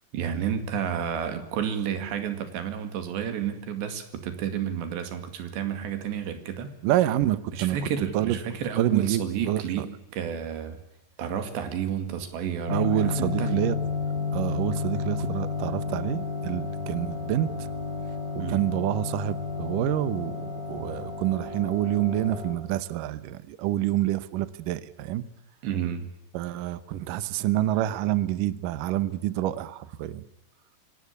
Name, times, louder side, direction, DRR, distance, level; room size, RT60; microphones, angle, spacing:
voice 1, 0.1-6.7 7.5-10.8 11.2-13.6 18.4-18.7 25.6-26.1, right 8 dB, 85° right, 8 dB, 4.5 m, -31 dB
voice 2, 6.8-7.8 8.1-8.4 8.8-9.9 12.7-13.8 14.3-17.7 18.3-25.2 26.3-30.2, right 13 dB, 70° right, 15 dB, 2.1 m, -27 dB
sound 1, 12.7-22.5, left 4 dB, 15° right, 5.4 m, -31 dB
24.5 x 18.5 x 8.5 m, 0.92 s
omnidirectional pair, 4.8 m